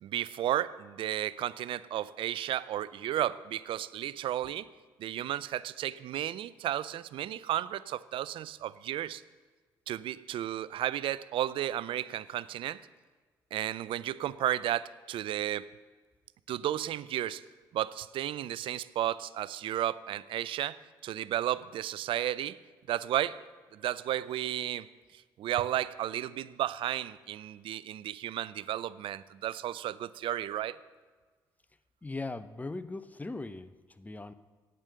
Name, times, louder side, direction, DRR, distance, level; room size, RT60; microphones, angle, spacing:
voice 1, 0.0-4.7 5.0-9.2 9.9-12.8 13.5-15.7 16.5-17.4 17.7-22.6 22.9-23.4 23.7-24.9 25.1-30.8, right 12 dB, 65° right, 18 dB, 0.4 m, -33 dB
voice 2, 32.0-34.3, left 3 dB, 15° left, 13 dB, 0.7 m, -39 dB
8.9 x 8.9 x 6.7 m, 1.4 s
hypercardioid pair, 60°, 10 cm